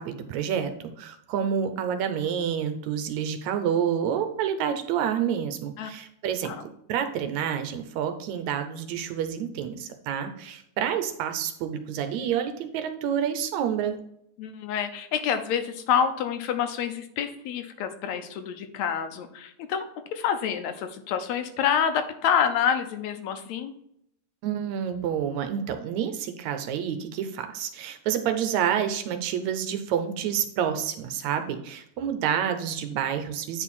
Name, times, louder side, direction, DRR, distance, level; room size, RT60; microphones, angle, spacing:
voice 1, 0.0-14.0 24.4-33.6, right 8 dB, 75° right, 8 dB, 2.0 m, -28 dB
voice 2, 14.4-23.7, left 8 dB, 75° left, 8 dB, 2.0 m, -27 dB
9.2 x 4.5 x 4.2 m, 0.74 s
omnidirectional pair, 3.3 m